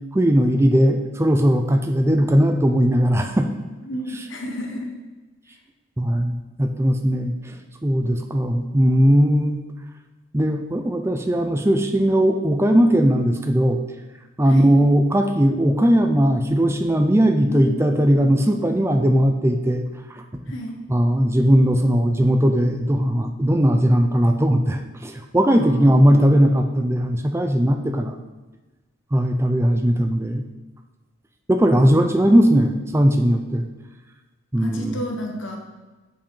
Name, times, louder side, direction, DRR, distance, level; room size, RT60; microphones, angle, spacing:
voice 1, 0.1-3.5 6.0-7.6 7.8-9.6 10.3-13.8 14.4-19.8 20.1-20.4 20.9-28.2 29.1-30.4 31.5-33.7 34.5-35.0, equal, 10° right, 5 dB, 0.4 m, -18 dB
voice 2, 3.8-4.9 14.5-14.7 17.5-18.0 20.5-20.8 25.5-26.0 34.6-35.6, equal, 60° left, 2 dB, 1.1 m, -32 dB
7.4 x 5.1 x 5.4 m, 1.2 s
head